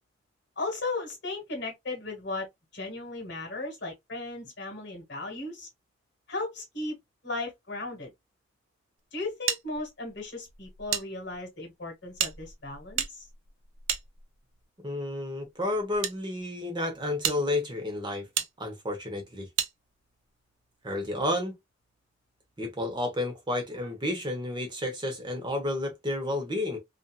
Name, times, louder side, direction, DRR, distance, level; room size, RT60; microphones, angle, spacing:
voice 1, 0.6-2.5 2.7-5.7 6.3-7.0 7.2-8.1 9.1-13.3, left 2 dB, 60° left, 1.3 m, -36 dB
sound 1, 9.5-11.0 11.3-11.4 12.1-14.6 15.4-16.1 16.7-16.8 17.2-17.4 18.3-18.5 19.6-19.7, right 9 dB, 85° right, 0.5 m, -32 dB
voice 2, 14.8-18.3 18.6-19.5 20.8-21.5 22.6-26.8, left 1 dB, 25° right, 0.8 m, -31 dB
2.7 x 2.5 x 2.2 m
head